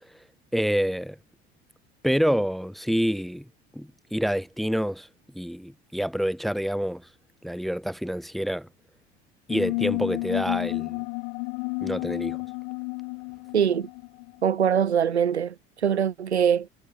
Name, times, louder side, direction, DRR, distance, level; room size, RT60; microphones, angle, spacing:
voice 1, 0.5-1.2 2.0-3.5 3.7-5.1 5.3-7.1 7.4-8.7 9.5-11.0 11.8-12.4, equal, ahead, 2.0 m, -27 dB
sound 1, 9.5-14.7, left 33 dB, 65° left, 3.9 m, -31 dB
voice 2, 13.5-13.9 14.4-15.5 15.8-16.7, right 8 dB, 80° right, 3.7 m, -22 dB
figure-of-eight pair, 65°, 32 cm